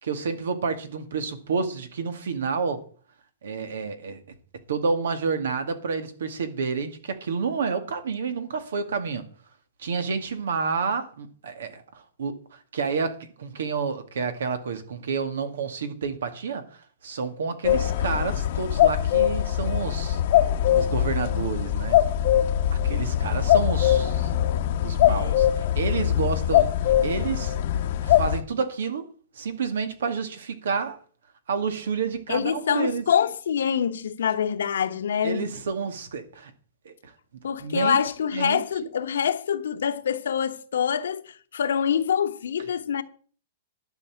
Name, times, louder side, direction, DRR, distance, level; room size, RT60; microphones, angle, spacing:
voice 1, 0.0-2.8 3.4-4.2 4.7-9.2 9.8-11.8 12.2-16.6 17.0-20.2 20.7-22.0 22.8-24.3 24.8-27.5 28.0-29.1 29.4-31.0 31.5-33.0 35.2-36.5 36.9-37.0 37.6-38.0 38.3-38.6, right 5 dB, 85° right, 2.1 m, -29 dB
sound 1, 17.6-28.4, left 11 dB, 55° left, 0.9 m, -22 dB
voice 2, 25.1-25.5 32.3-35.5 37.4-43.0, left 8 dB, 85° left, 1.2 m, -25 dB
11.5 x 5.6 x 8.5 m
hypercardioid pair, 155°, 0 cm